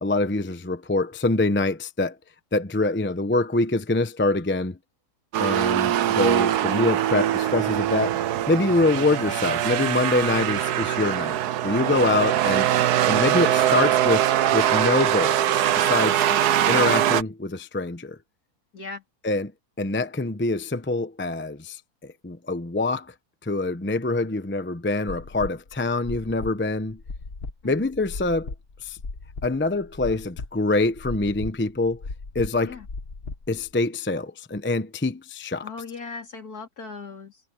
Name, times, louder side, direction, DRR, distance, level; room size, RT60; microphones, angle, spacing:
voice 1, 0.0-2.2 2.5-4.8 5.4-8.2 8.5-12.6 13.1-15.4 15.8-16.3 16.7-18.2 19.2-19.5 19.8-23.1 23.4-27.0 27.6-28.5 28.8-29.0 29.4-32.0 32.3-32.8 33.5-35.7, left 2 dB, 10° left, 0.6 m, -25 dB
sound 1, 5.3-17.2, right 11 dB, 75° right, 1.3 m, -22 dB
voice 2, 5.4-5.8 16.3-16.5 18.7-19.0 27.6-27.7 32.6-32.9 35.6-37.4, left 4 dB, 65° left, 3.8 m, -38 dB
sound 2, 25.1-33.7, left 3 dB, 40° left, 1.6 m, -37 dB
omnidirectional pair, 1.7 m